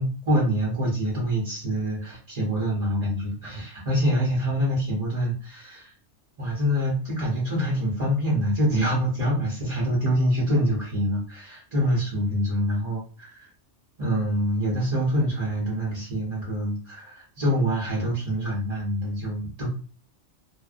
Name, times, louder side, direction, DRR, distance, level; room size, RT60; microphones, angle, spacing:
voice 1, 0.0-5.9 6.4-13.5 14.0-19.7, equal, 35° right, -5 dB, 0.7 m, -25 dB
2.5 x 2.1 x 2.4 m, 0.39 s
omnidirectional pair, 1.2 m